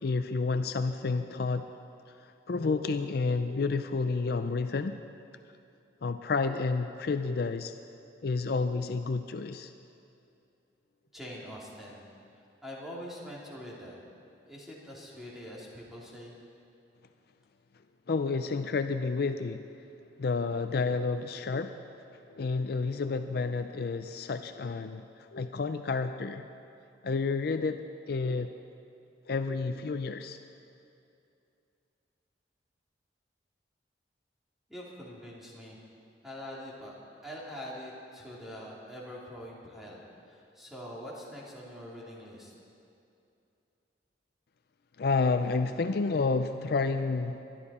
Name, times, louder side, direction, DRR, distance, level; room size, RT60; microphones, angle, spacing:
voice 1, 0.0-1.7 2.5-5.0 6.0-7.7 8.2-9.7 18.1-19.6 20.2-21.8 22.3-25.1 25.3-26.6 27.0-28.5 29.3-30.4 45.0-47.4, left 4 dB, 55° left, 9 dB, 0.4 m, -30 dB
voice 2, 11.1-12.0 12.6-14.0 14.5-16.3 34.7-35.8 36.2-36.9 37.2-42.5, equal, ahead, -5 dB, 2.7 m, -44 dB
22.0 x 12.0 x 4.2 m, 2.6 s
head